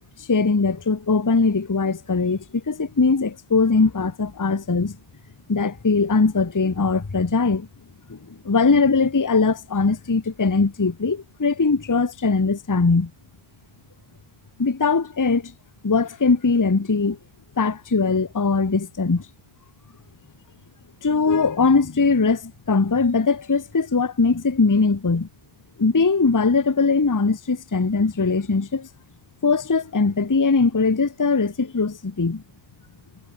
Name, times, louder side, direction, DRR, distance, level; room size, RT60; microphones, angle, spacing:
voice 1, 0.3-5.0 5.5-7.7 8.1-8.2 8.4-13.1 14.6-15.5 15.8-17.2 17.6-19.2 21.0-25.3 25.8-28.9 29.4-32.4, left 4 dB, 20° left, 0.7 m, -20 dB
omnidirectional pair, 1.1 m